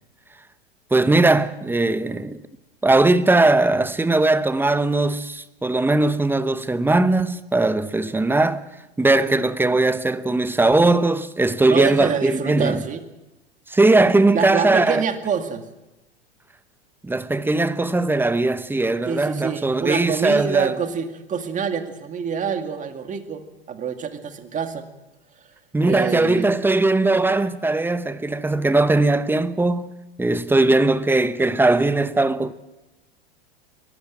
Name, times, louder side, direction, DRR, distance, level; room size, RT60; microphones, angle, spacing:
voice 1, 0.9-2.4 2.8-8.6 9.0-12.8 13.7-15.0 17.0-20.8 25.7-32.5, right 2 dB, 5° right, 0.9 m, -19 dB
voice 2, 11.7-13.0 14.3-15.7 19.1-24.9 25.8-26.6 30.5-30.7, right 7 dB, 25° right, 2.2 m, -26 dB
22.5 x 14.5 x 8.9 m
hypercardioid pair, 100°, 31 cm